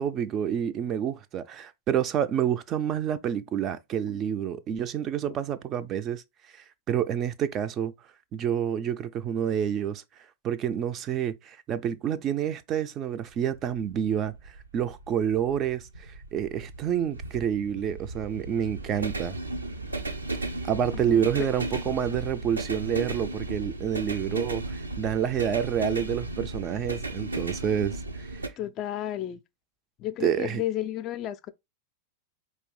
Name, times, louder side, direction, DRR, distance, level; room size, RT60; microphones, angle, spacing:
voice 1, 0.0-6.2 6.9-7.9 8.3-10.0 10.4-19.4 20.7-28.3 30.2-30.6, right 9 dB, 30° right, 0.4 m, -28 dB
sound 1, 13.3-28.5, right 2 dB, 80° right, 0.5 m, -35 dB
voice 2, 20.9-21.5 28.6-29.4 30.0-31.5, left 13 dB, 35° left, 0.4 m, -33 dB
4.6 x 2.7 x 3.1 m
figure-of-eight pair, 90°, 0 cm